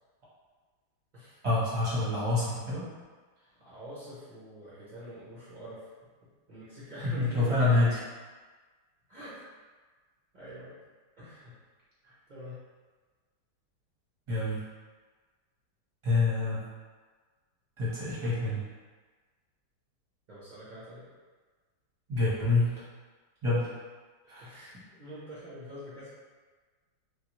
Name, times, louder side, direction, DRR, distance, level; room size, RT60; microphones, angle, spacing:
voice 1, 1.4-2.8 7.0-8.0 14.3-14.6 16.0-16.6 17.8-18.6 22.1-22.7 23.4-23.7 24.3-24.4, left 2 dB, 25° right, -10 dB, 0.6 m, -27 dB
voice 2, 3.6-5.9 6.5-7.6 9.1-9.4 10.3-10.8 11.2-11.5 12.3-12.6 20.3-21.1 24.4-26.1, equal, 70° right, -10 dB, 0.4 m, -45 dB
3.4 x 2.4 x 3.0 m, 1.4 s
omnidirectional pair, 2.2 m